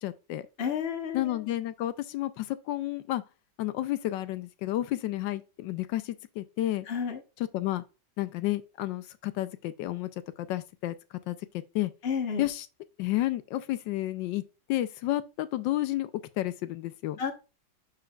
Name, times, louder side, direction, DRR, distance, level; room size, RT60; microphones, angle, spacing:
voice 1, 0.0-0.5 1.1-3.2 3.6-6.9 7.5-7.8 8.2-10.1 10.4-11.0 11.3-11.4 11.7-11.9 12.4-12.7 13.0-14.4 14.7-16.1 16.4-17.2, left 15 dB, 85° left, 1.3 m, -31 dB
voice 2, 0.6-1.4 6.9-7.2 12.0-12.5 17.2-17.3, left 7 dB, 40° left, 1.3 m, -31 dB
10.0 x 5.7 x 2.3 m
omnidirectional pair, 1.9 m